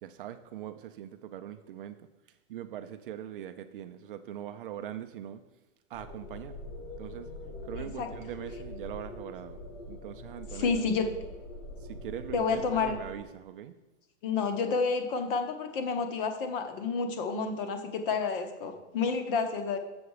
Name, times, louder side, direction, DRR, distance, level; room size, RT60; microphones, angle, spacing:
voice 1, 0.0-5.4 5.9-6.6 7.0-7.3 7.6-9.6 9.9-10.8 11.8-13.8, right 10 dB, 50° right, 9 dB, 0.4 m, -42 dB
sound 1, 5.9-13.2, left 1 dB, 85° left, 2.7 m, -43 dB
voice 2, 7.8-8.1 10.5-11.1 12.3-13.0 14.2-19.8, left 4 dB, 45° left, 7 dB, 1.1 m, -30 dB
7.0 x 6.7 x 4.8 m, 1.1 s
supercardioid pair, 170°, 37 cm